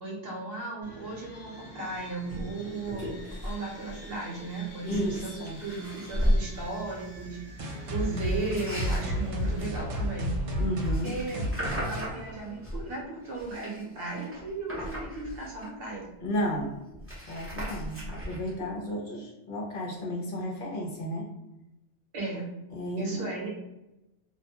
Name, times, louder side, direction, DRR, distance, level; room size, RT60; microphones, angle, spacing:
voice 1, 0.0-3.2 3.4-7.4 7.9-10.4 11.0-16.1 22.1-22.5 23.0-23.5, right 3 dB, 60° right, -3 dB, 1.0 m, -36 dB
sound 1, 0.8-9.8, equal, 25° left, 0.8 m, -46 dB
sound 2, 2.3-2.4 2.8-3.6 3.9-4.1 4.7-6.4 8.1-12.9 13.2-15.9 16.3-16.4 16.6-18.6, equal, 15° right, 0.5 m, -35 dB
voice 2, 4.8-5.6 10.6-11.2 16.2-16.7 17.3-21.3 22.7-23.3, equal, 60° left, -1 dB, 0.6 m, -33 dB
sound 3, 7.6-13.0, equal, 75° right, 1.0 m, -32 dB
2.3 x 2.1 x 2.8 m, 0.93 s
omnidirectional pair, 1.2 m